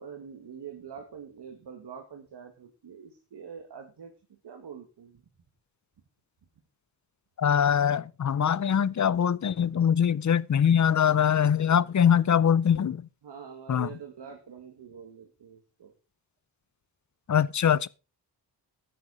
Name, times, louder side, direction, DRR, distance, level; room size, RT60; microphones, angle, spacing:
voice 1, 0.0-5.3 11.4-12.2 13.2-15.9, right 7 dB, 80° right, 2.0 m, -45 dB
voice 2, 7.4-13.1 13.7-13.9 17.3-17.9, left 8 dB, 45° left, 0.6 m, -23 dB
13.5 x 10.0 x 4.1 m
wide cardioid pair, 125°, 40 cm